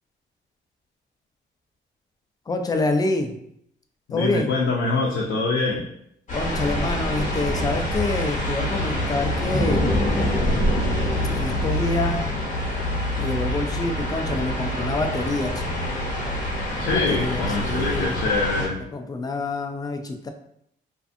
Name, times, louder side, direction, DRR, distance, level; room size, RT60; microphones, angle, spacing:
voice 1, 2.5-3.3 4.1-4.5 6.3-9.9 11.3-12.2 13.2-15.6 16.9-18.2 18.9-20.3, left 2 dB, 20° left, 5 dB, 0.3 m, -27 dB
voice 2, 4.1-5.9 16.8-18.8, left 3 dB, 75° left, -2 dB, 0.5 m, -24 dB
sound 1, 6.3-18.7, left 1 dB, 40° left, 0.8 m, -25 dB
2.5 x 2.3 x 2.5 m, 0.73 s
cardioid pair, 90°, 20 cm